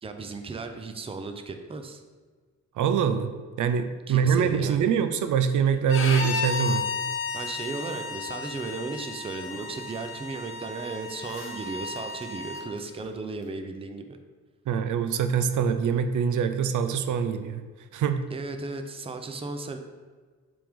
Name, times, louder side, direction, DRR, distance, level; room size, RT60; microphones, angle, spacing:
voice 1, 0.0-2.0 4.1-4.9 7.3-14.2 18.3-19.8, right 3 dB, 20° right, 6 dB, 0.4 m, -35 dB
voice 2, 2.8-6.9 14.7-17.6 17.9-18.2, right 7 dB, 80° right, 9 dB, 0.5 m, -24 dB
sound 1, 5.2-6.5 8.7-8.8 9.2-10.0 10.3-13.5, right 2 dB, 50° right, 1.1 m, -54 dB
Bowed string instrument, 5.9-12.6, left 4 dB, 40° left, 0.7 m, -33 dB
7.5 x 3.5 x 3.6 m, 1.5 s
cardioid pair, 120°, 30 cm